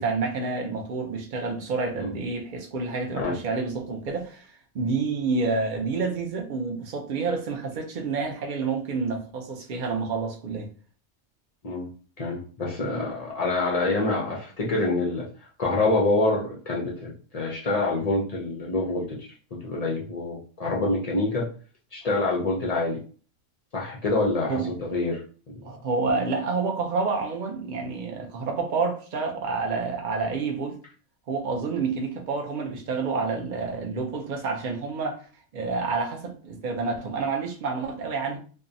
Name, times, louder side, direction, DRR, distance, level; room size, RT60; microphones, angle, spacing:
voice 1, 0.0-10.7 24.5-24.7 25.6-30.8 31.3-35.2 35.5-38.4, right 4 dB, 60° right, 0.5 m, -28 dB
voice 2, 12.2-15.3 15.6-21.5 21.9-23.0 23.7-25.2, left 2 dB, 55° left, 0.4 m, -26 dB
2.6 x 2.1 x 2.6 m
omnidirectional pair, 1.3 m